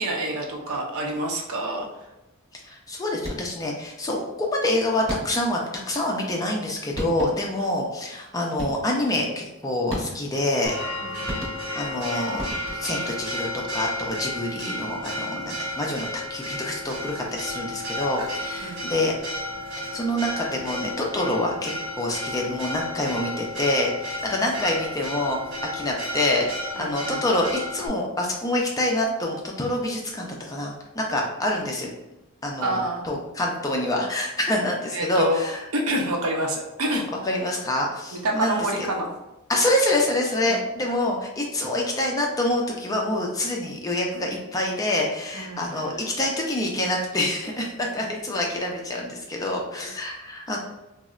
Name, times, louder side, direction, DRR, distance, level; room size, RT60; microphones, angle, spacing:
voice 1, 0.0-1.9 7.6-7.7 11.0-11.4 18.6-18.8 24.3-24.4 26.8-27.2 32.6-33.0 34.9-37.1 38.2-39.1 40.5-40.6 44.1-44.2 45.3-45.8, right 1 dB, 80° right, 1 dB, 0.6 m, -27 dB
voice 2, 2.5-10.8 11.7-12.4 12.7-19.4 19.9-25.4 25.7-31.9 32.4-35.6 37.2-38.9 39.5-50.6, left 1 dB, 15° left, 0 dB, 0.4 m, -26 dB
sound 1, 3.2-3.7 5.1-5.6 6.6-6.7 7.0-7.6 8.6-9.0 9.9-10.4 11.3-11.9 12.4-13.1, equal, 30° right, 0.9 m, -34 dB
Church bell, 10.7-27.9, left 1 dB, 55° right, 1.1 m, -32 dB
3.9 x 2.0 x 2.3 m, 0.98 s
head